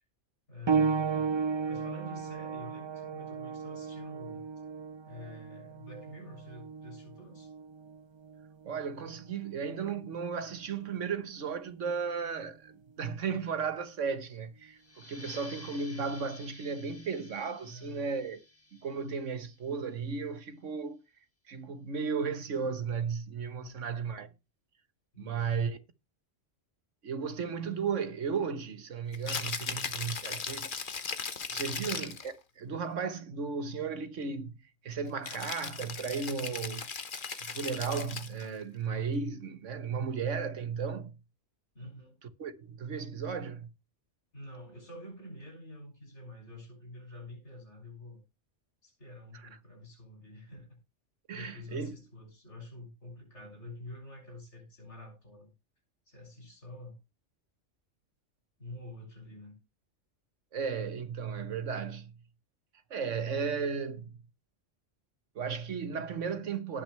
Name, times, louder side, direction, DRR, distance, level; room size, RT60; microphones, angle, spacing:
voice 1, 0.5-1.3 1.7-4.5 5.1-7.5 15.0-15.4 17.7-18.1 23.6-23.9 25.1-25.6 31.6-32.0 41.8-42.2 44.3-48.2 48.8-50.8 51.3-55.5 56.1-57.0 58.6-59.6, left 1 dB, 70° left, 6.8 m, -48 dB
sound 1, 0.7-10.9 11.8-12.0 12.7-12.8, right 5 dB, 40° right, 0.4 m, -35 dB
voice 2, 8.6-18.4 18.8-21.0 21.5-24.3 25.2-25.8 27.0-30.7 31.5-34.5 34.8-36.9 37.4-41.1 42.4-43.7 51.3-52.0 60.5-62.1 62.9-64.2 65.4-66.8, right 5 dB, 85° right, 1.6 m, -35 dB
sound 2, 14.8-20.0, left 2 dB, 10° left, 1.6 m, -52 dB
Rattle (instrument), 29.1-32.3 35.2-38.5, left 5 dB, 45° left, 1.2 m, -37 dB
18.0 x 6.2 x 3.3 m
omnidirectional pair, 1.2 m